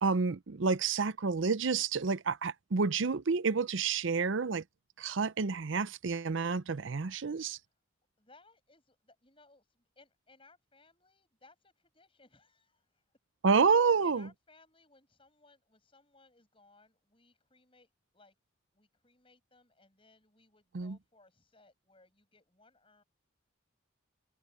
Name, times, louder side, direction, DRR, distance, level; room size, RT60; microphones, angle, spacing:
voice 1, 0.0-4.6 5.0-7.6 13.4-14.3 20.7-21.0, right 5 dB, 70° right, 0.6 m, -29 dB
voice 2, 8.2-13.0 14.0-18.3 18.7-23.0, left 3 dB, 25° left, 8.0 m, -64 dB
head